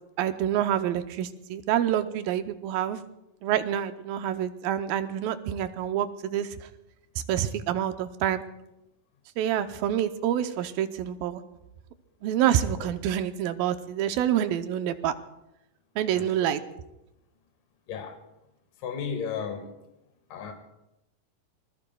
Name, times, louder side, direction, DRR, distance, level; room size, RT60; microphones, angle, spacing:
voice 1, 0.2-3.0 3.4-6.7 7.3-8.4 9.4-11.4 12.2-15.2 16.0-16.6, right 10 dB, 85° right, 9 dB, 2.5 m, -27 dB
voice 2, 16.1-16.6 17.9-18.2 18.8-19.7 20.3-20.5, left 6 dB, 70° left, 5 dB, 3.2 m, -34 dB
28.5 x 20.5 x 2.3 m, 0.90 s
omnidirectional pair, 4.0 m